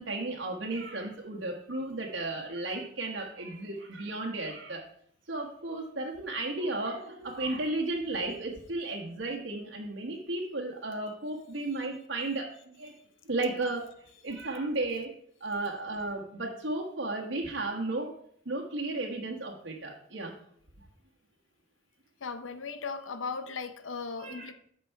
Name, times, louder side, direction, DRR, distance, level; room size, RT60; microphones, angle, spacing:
voice 1, 0.0-4.8 5.3-12.9 13.3-13.8 14.2-15.1 15.4-18.1 18.4-20.3 24.2-24.5, right 2 dB, 65° right, 1.2 m, -34 dB
voice 2, 22.2-24.5, left 5 dB, 75° left, 0.7 m, -37 dB
9.0 x 5.9 x 4.6 m
head